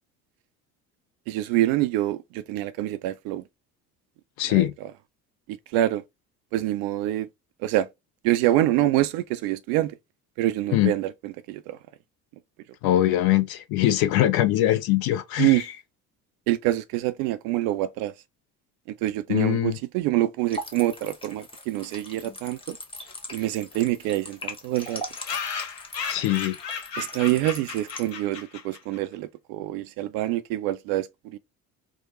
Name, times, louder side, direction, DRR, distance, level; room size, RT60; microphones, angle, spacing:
voice 1, 1.3-3.4 4.5-4.6 5.7-6.0 6.5-7.3 7.6-7.9 8.2-9.9 10.4-11.8 15.4-15.6 16.5-18.1 19.0-22.8 23.3-25.0 27.0-31.4, right 15 dB, 50° right, 0.5 m, -26 dB
voice 2, 4.4-4.7 10.7-10.9 12.8-15.6 19.3-19.8 26.1-26.5, left 14 dB, 50° left, 0.8 m, -22 dB
sound 1, 20.5-28.1, left 1 dB, 10° left, 1.2 m, -40 dB
sound 2, 23.1-23.2 23.4-23.5 23.7-23.8 24.0-24.1 24.8-29.0, left 6 dB, 80° left, 0.8 m, -35 dB
4.6 x 2.1 x 3.0 m
figure-of-eight pair, 55°, 48 cm